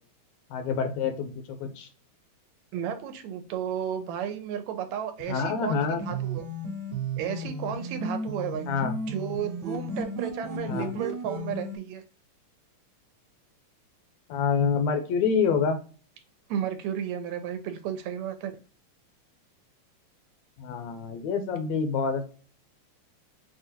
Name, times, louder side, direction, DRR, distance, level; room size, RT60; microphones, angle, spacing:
voice 1, 0.5-1.9 5.3-6.1 8.7-8.9 10.7-10.9 14.3-15.8 20.6-22.3, left 5 dB, 75° left, 7 dB, 1.8 m, -27 dB
voice 2, 2.7-6.5 7.2-8.7 9.1-12.0 16.5-18.6, right 9 dB, 80° right, 7 dB, 1.9 m, -33 dB
sound 1, 6.0-11.8, right 1 dB, 50° right, 1.2 m, -34 dB
6.1 x 2.4 x 2.7 m, 0.38 s
omnidirectional pair, 3.3 m